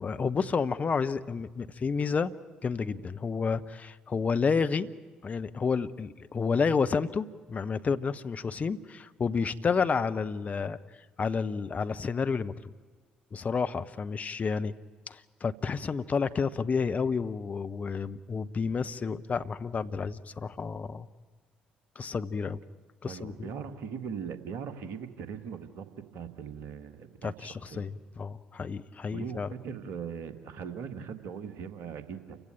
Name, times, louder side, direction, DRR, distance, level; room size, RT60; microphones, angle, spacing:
voice 1, 0.0-2.3 2.6-4.9 5.2-10.8 11.2-12.7 13.3-14.7 15.1-21.1 22.0-22.6 23.0-23.5 27.2-29.5, left 5 dB, 35° left, 11 dB, 0.9 m, -30 dB
voice 2, 23.0-25.8 26.1-27.9 29.1-32.4, right 7 dB, 60° right, 10 dB, 1.7 m, -40 dB
28.5 x 16.0 x 8.9 m, 1.4 s
figure-of-eight pair, 50°, 4 cm